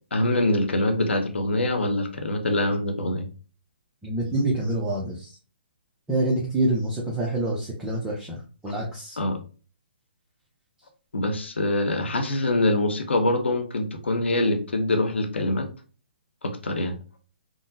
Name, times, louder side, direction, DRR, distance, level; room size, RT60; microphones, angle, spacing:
voice 1, 0.1-3.2 9.2-9.4 11.1-15.7 16.4-16.9, left 1 dB, 90° left, 5 dB, 0.7 m, -24 dB
voice 2, 4.0-5.3 6.1-9.2, right 1 dB, 10° right, -4 dB, 0.6 m, -26 dB
3.7 x 2.1 x 2.6 m, 0.36 s
hypercardioid pair, 150°, 6 cm